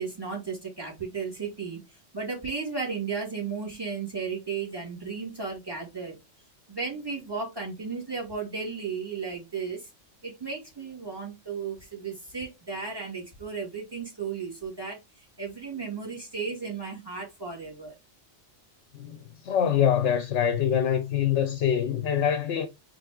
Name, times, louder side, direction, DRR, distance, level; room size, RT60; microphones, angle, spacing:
voice 1, 0.0-1.8 2.1-6.2 6.7-9.9 10.2-15.0 15.4-17.9, right 5 dB, 20° right, 2.2 m, -34 dB
voice 2, 18.9-22.7, left 9 dB, 70° left, 0.9 m, -25 dB
3.8 x 3.6 x 3.6 m
omnidirectional pair, 1.3 m